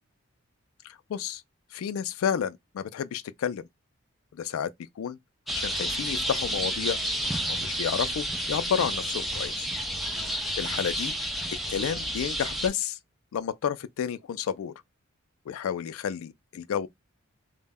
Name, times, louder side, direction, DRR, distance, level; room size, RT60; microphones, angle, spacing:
voice 1, 0.8-1.4 1.7-3.7 4.3-5.2 5.5-7.0 7.5-9.7 10.6-11.1 11.7-13.0 13.3-14.7 15.5-16.9, left 8 dB, 75° left, 0.3 m, -31 dB
sound 1, 5.5-12.7, equal, ahead, 0.4 m, -30 dB
2.1 x 2.0 x 3.3 m
head